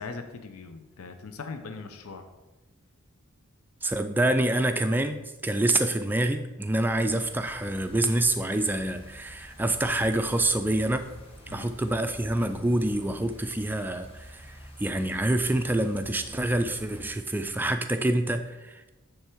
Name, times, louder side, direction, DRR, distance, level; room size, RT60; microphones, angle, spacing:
voice 1, 0.0-2.3 11.5-11.7, left 4 dB, 75° left, 7 dB, 0.6 m, -40 dB
voice 2, 3.8-11.1 11.5-18.9, right 1 dB, 10° right, 7 dB, 0.3 m, -27 dB
sound 1, 6.9-17.1, equal, 25° left, 1.3 m, -48 dB
10.0 x 3.4 x 4.5 m, 1.1 s
head